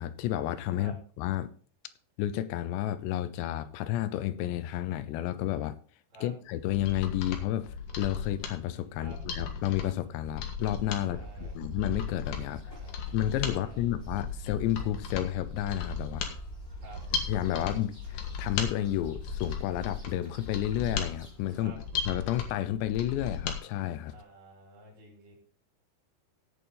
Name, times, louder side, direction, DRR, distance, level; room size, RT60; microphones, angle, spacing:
voice 1, 0.0-1.5 2.2-5.8 6.2-12.6 13.1-16.3 17.3-21.7 22.1-24.2, left 13 dB, 85° left, 3.0 m, -31 dB
Mechanisms, 6.5-23.6 23.9-24.0, left 6 dB, 60° left, 2.7 m, -37 dB
voice 2, 11.0-11.6 12.7-13.0 13.5-13.8 16.8-17.0 21.5-21.8 24.1-25.4, right 2 dB, 55° right, 5.0 m, -51 dB
sound 1, 11.1-21.6, equal, 5° left, 3.4 m, -44 dB
16.5 x 7.0 x 3.9 m
omnidirectional pair, 4.9 m